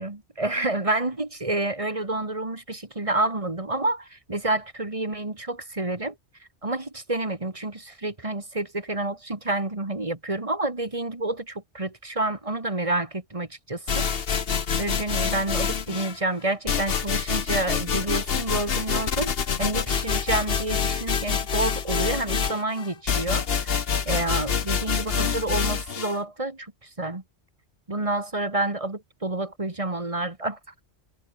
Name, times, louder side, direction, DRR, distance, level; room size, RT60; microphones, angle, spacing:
voice 1, 0.0-6.1 6.6-14.1 14.8-27.2 27.9-30.6, right 2 dB, 30° right, 2.2 m, -29 dB
sound 1, 13.9-16.2 16.7-26.2, left 6 dB, 55° left, 1.3 m, -26 dB
omnidirectional pair, 1.2 m